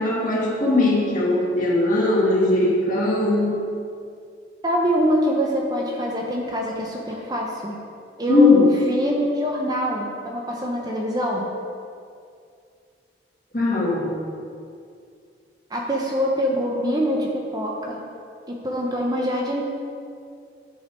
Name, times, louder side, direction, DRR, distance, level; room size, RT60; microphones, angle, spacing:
voice 1, 0.0-3.6 8.3-8.7 13.5-14.1, left 2 dB, 45° left, -5 dB, 2.0 m, -19 dB
voice 2, 4.6-7.8 8.2-11.5 15.7-18.0 18.5-19.6, equal, 20° right, -1 dB, 0.9 m, -24 dB
8.7 x 6.6 x 4.6 m, 2.4 s
head